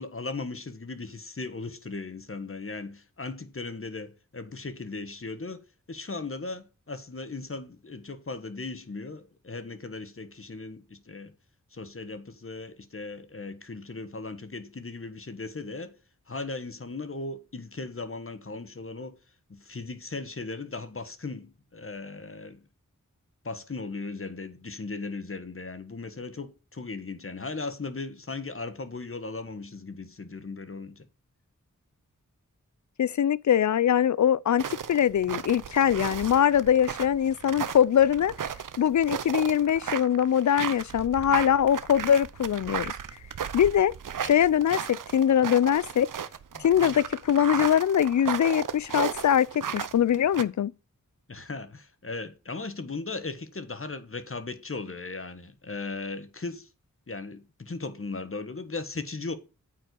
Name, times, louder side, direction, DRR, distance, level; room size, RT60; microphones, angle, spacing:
voice 1, 0.0-11.3 11.7-16.0 16.3-19.2 19.5-22.6 23.4-31.1 46.5-47.0 51.3-56.7 57.1-59.3, left 3 dB, 40° left, 1.4 m, -37 dB
voice 2, 33.0-38.3 38.8-42.9 43.5-43.9 44.2-46.1 46.6-50.7, left 9 dB, 65° left, 0.5 m, -22 dB
sound 1, 34.6-50.4, right 8 dB, 80° right, 0.7 m, -35 dB
8.8 x 4.7 x 6.8 m
cardioid pair, 45°, 32 cm